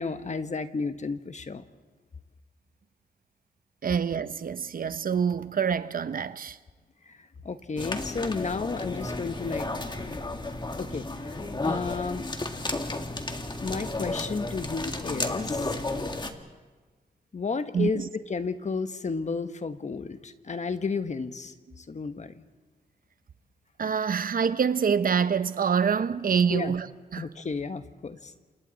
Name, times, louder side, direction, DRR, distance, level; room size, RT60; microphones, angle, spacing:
voice 1, 0.0-1.6 7.1-7.2 7.4-9.7 10.8-12.3 13.6-15.8 17.3-22.4 26.5-26.8 27.2-28.3, left 4 dB, 45° left, 1.3 m, -32 dB
voice 2, 3.8-6.6 17.7-18.1 23.8-26.9 27.1-27.2, right 6 dB, 60° right, 0.9 m, -26 dB
sound 1, 7.8-16.3, left 2 dB, 25° left, 2.0 m, -33 dB
28.5 x 28.0 x 4.1 m
cardioid pair, 60°, 17 cm